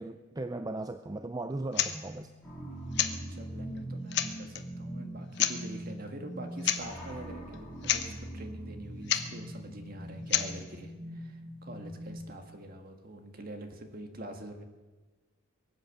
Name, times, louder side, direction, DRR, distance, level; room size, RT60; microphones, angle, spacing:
voice 1, 0.0-2.3, right 2 dB, 20° right, 9 dB, 0.4 m, -37 dB
sound 1, 1.7-1.9 2.9-3.2 3.8-3.9 4.1-4.6 5.3-5.6 6.6-6.8 7.1-7.2 7.5-7.6 7.8-8.1 9.1-9.3 10.3-10.5, left 10 dB, 55° left, 0.9 m, -28 dB
sound 2, 1.9-14.0, equal, 40° left, 2.6 m, -62 dB
sound 3, 2.4-12.4, right 1 dB, 5° left, 3.9 m, -42 dB
voice 2, 3.1-14.6, right 1 dB, 45° right, 5 dB, 1.7 m, -45 dB
23.0 x 8.0 x 6.8 m, 1.2 s
head